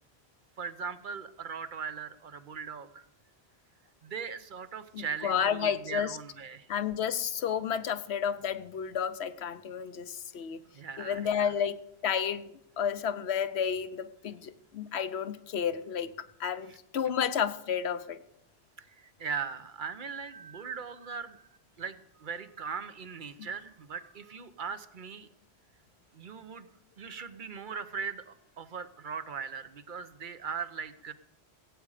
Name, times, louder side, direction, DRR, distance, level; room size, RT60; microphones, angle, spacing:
voice 1, 0.6-3.1 4.0-6.7 10.7-11.5 16.7-16.8 18.8-21.5 21.8-25.3 26.1-26.7 27.0-31.1, right 6 dB, 50° right, 12 dB, 1.0 m, -39 dB
voice 2, 4.9-6.2 6.7-10.6 11.0-11.8 12.0-16.1 16.4-18.2, left 8 dB, 75° left, 13 dB, 1.1 m, -31 dB
16.5 x 8.7 x 4.9 m, 0.87 s
omnidirectional pair, 1.1 m